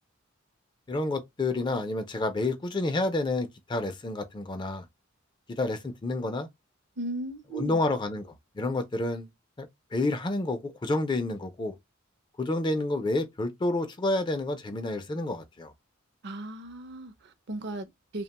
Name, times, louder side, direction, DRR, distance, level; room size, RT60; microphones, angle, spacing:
voice 1, 0.9-4.9 5.5-6.5 7.5-9.3 9.6-11.7 12.4-15.7, left 2 dB, 20° left, 0.4 m, -29 dB
voice 2, 7.0-7.8 16.2-18.2, right 1 dB, 55° right, 0.5 m, -37 dB
2.8 x 2.1 x 2.8 m
head